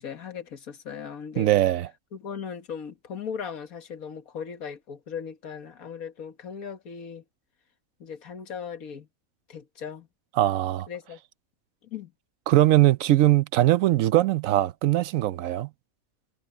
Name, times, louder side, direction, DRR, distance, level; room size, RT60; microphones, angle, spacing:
voice 1, 0.0-1.5 2.1-7.2 8.0-9.1 9.5-10.1 10.9-11.2 11.9-12.1, left 7 dB, 80° left, 1.9 m, -38 dB
voice 2, 1.4-1.9 10.4-10.9 12.5-15.7, right 14 dB, 75° right, 0.9 m, -21 dB
omnidirectional pair, 1.5 m